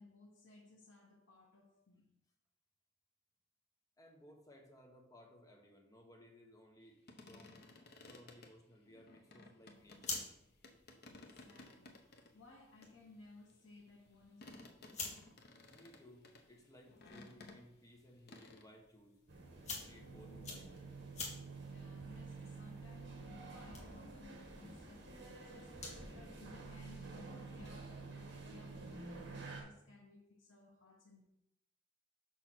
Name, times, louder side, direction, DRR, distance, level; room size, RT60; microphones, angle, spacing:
voice 1, 0.0-2.1 11.1-15.0 21.6-31.2, left 2 dB, 80° left, -3 dB, 1.1 m, -60 dB
voice 2, 4.0-7.6 8.0-10.2 15.7-19.2 19.8-20.7, equal, 20° left, 1 dB, 1.1 m, -60 dB
sound 1, 7.1-10.3 10.6-12.3 12.8-18.0 18.3-18.7, left 2 dB, 60° left, 0.9 m, -57 dB
sound 2, 9.7-26.1, left 3 dB, 35° left, 1.7 m, -51 dB
sound 3, 19.3-29.6, right 3 dB, 65° right, 1.5 m, -50 dB
6.2 x 5.8 x 4.3 m, 0.80 s
head